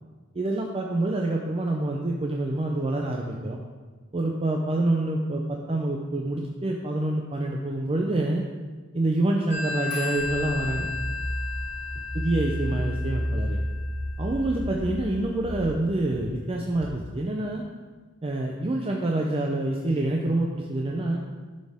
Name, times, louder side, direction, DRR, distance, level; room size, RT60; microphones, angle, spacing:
voice 1, 0.3-3.6 4.1-8.4 8.9-10.9 12.1-13.6 14.2-17.6 18.2-21.2, right 2 dB, 25° right, 0 dB, 0.6 m, -27 dB
Telephone, 9.5-14.8, left 4 dB, 50° left, 1.7 m, -35 dB
sound 1, 10.1-16.9, equal, 10° right, 2.1 m, -32 dB
11.5 x 6.4 x 3.6 m, 1.4 s
head